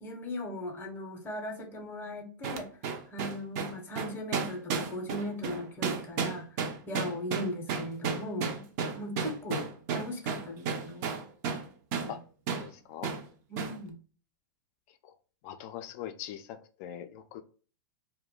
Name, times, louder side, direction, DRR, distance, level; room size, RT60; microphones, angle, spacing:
voice 1, 0.0-8.7 8.9-11.2 12.0-12.2 13.5-14.0, left 1 dB, 20° left, 4 dB, 0.7 m, -38 dB
Metal Banging, 2.4-11.7 11.9-12.1 12.5-12.7 13.0-13.2 13.6-13.8, right 5 dB, 50° right, 0.5 m, -33 dB
voice 2, 12.6-13.1 15.4-17.4, left 10 dB, 50° left, 9 dB, 0.4 m, -42 dB
2.3 x 2.1 x 3.6 m, 0.39 s
hypercardioid pair, 110°, 11 cm